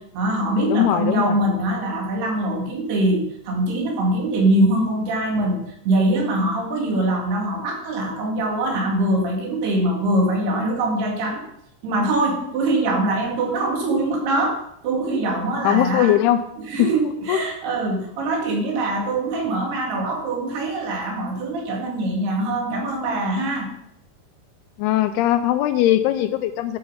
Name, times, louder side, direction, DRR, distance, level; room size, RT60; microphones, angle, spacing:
voice 1, 0.0-11.4 11.8-16.2 16.7-23.7, right 1 dB, 70° right, 1 dB, 4.2 m, -23 dB
voice 2, 0.7-1.4 15.6-16.4 16.8-16.9 17.3-17.4 24.8-26.8, left 12 dB, 80° left, 10 dB, 2.4 m, -19 dB
12.0 x 6.8 x 5.6 m, 0.76 s
omnidirectional pair, 4.9 m